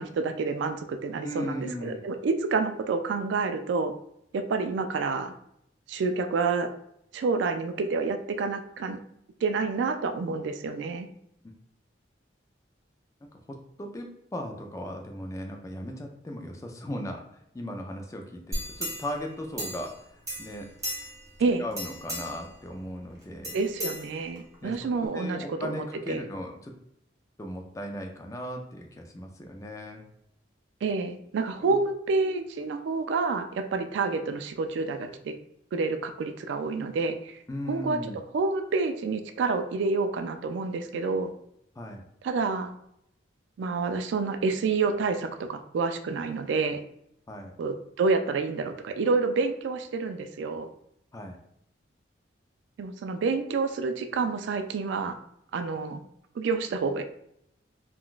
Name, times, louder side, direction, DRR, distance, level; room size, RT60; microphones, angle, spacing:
voice 1, 0.0-3.9 4.3-5.3 5.9-6.7 7.1-9.0 9.4-11.1 21.4-21.7 23.5-26.3 30.8-35.4 35.7-37.4 37.7-38.0 38.3-41.3 42.2-42.7 43.6-46.8 47.6-50.7 52.8-55.2 55.5-56.0 56.4-57.1, right 4 dB, 65° right, 8 dB, 0.3 m, -28 dB
voice 2, 1.2-2.0 13.2-17.2 17.5-19.9 20.4-20.7 21.6-23.6 24.6-26.7 27.4-30.0 31.7-31.8 37.5-38.2 41.8-42.0 47.3-47.5 51.1-51.4, left 1 dB, 15° left, 2 dB, 0.3 m, -37 dB
sound 1, 18.5-20.0 20.3-21.3 21.7-22.5 23.4-24.5 25.0-25.1, equal, 15° right, 0.8 m, -36 dB
3.7 x 2.3 x 2.4 m, 0.76 s
head